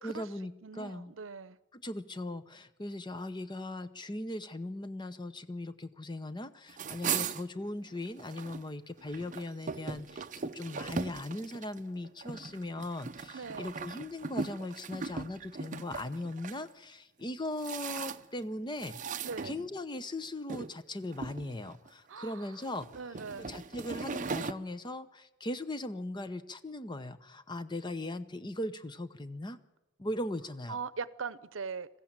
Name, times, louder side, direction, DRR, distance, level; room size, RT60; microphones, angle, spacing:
voice 1, 0.0-1.1 1.7-29.6 30.0-30.8, left 1 dB, 20° left, 12 dB, 0.8 m, -39 dB
voice 2, 0.6-1.6 13.3-13.7 19.2-19.6 22.1-22.5 22.9-23.5 30.7-31.9, right 5 dB, 80° right, 17 dB, 0.7 m, -40 dB
sound 1, 6.7-8.6 9.0-16.6 17.2-18.4 18.8-20.0 20.5-20.7 21.1-21.9 22.5-24.5, right 5 dB, 40° right, 0.6 m, -39 dB
20.5 x 15.0 x 8.8 m, 0.99 s
head